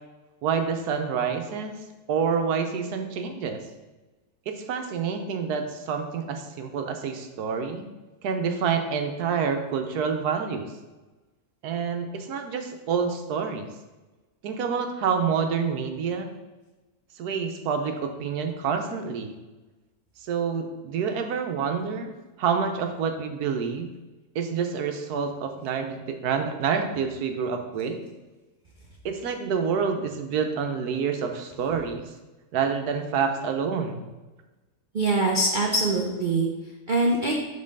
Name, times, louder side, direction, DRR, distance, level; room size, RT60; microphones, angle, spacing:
voice 1, 0.4-1.7 2.1-3.6 4.5-7.8 8.2-10.7 11.6-13.7 14.4-16.3 17.2-19.3 20.2-22.1 22.4-23.9 24.3-28.0 29.0-32.1 32.5-34.1, right 6 dB, 75° right, 5 dB, 1.2 m, -27 dB
voice 2, 34.9-37.3, right 2 dB, 50° right, -1 dB, 0.5 m, -24 dB
5.4 x 4.0 x 5.3 m, 1.1 s
omnidirectional pair, 1.7 m